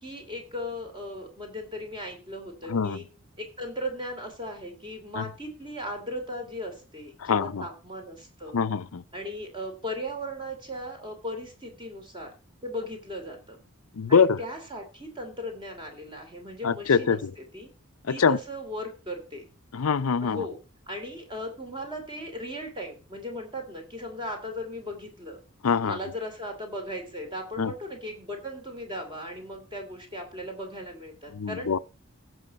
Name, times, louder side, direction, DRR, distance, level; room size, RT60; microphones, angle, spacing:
voice 1, 0.0-3.1 3.4-8.6 9.1-12.3 12.6-13.6 14.1-17.7 18.1-19.5 20.2-20.6 20.9-25.4 25.8-31.7, equal, 20° right, 2.9 m, -37 dB
voice 2, 7.2-7.6 8.5-9.0 14.0-14.4 16.6-17.3 18.1-18.4 19.7-20.4 25.6-26.0 27.6-27.7 31.4-31.8, left 6 dB, 75° left, 0.6 m, -24 dB
16.0 x 6.4 x 4.2 m
head